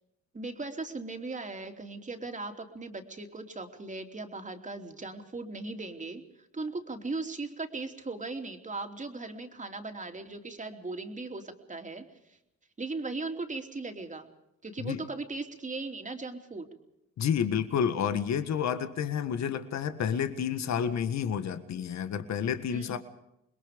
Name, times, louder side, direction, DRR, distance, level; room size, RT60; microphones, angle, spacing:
voice 1, 0.3-12.4 12.8-14.3 14.6-16.7 22.7-23.0, right 3 dB, 25° right, 5 dB, 3.2 m, -38 dB
voice 2, 17.2-23.0, left 8 dB, 65° left, 10 dB, 1.7 m, -30 dB
27.0 x 21.5 x 5.2 m, 0.84 s
cardioid pair, 90°, 30 cm